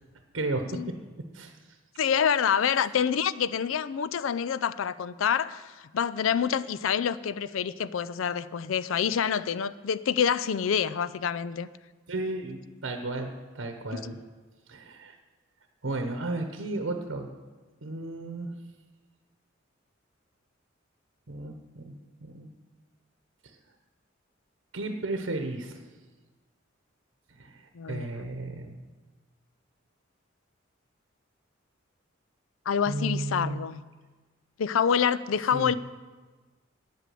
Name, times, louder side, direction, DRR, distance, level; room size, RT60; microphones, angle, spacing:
voice 1, 2.0-11.7 13.9-14.1 27.7-28.1 32.7-33.8 34.6-35.7, left 7 dB, 80° left, 0.4 m, -27 dB
voice 2, 12.1-14.2 14.7-15.2 15.8-17.3 17.8-18.5 21.3-21.9 22.2-22.5 24.7-25.8 27.4-27.6 27.9-28.8 32.9-33.7 35.5-35.8, right 2 dB, 75° right, 0.9 m, -33 dB
9.1 x 8.2 x 7.6 m
head